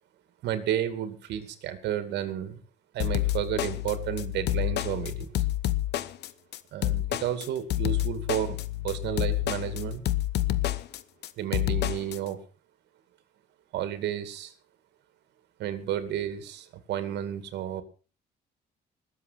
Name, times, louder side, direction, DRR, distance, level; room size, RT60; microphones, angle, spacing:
voice 1, 0.4-2.6 2.9-5.3 6.7-8.6 8.8-10.0 11.4-12.4 13.7-14.5 15.6-17.8, right 11 dB, 85° right, 11 dB, 2.5 m, -32 dB
sound 1, 3.0-12.2, left 15 dB, 80° left, 1.1 m, -29 dB
20.0 x 7.8 x 5.8 m, 0.36 s
cardioid pair, 105°, 17 cm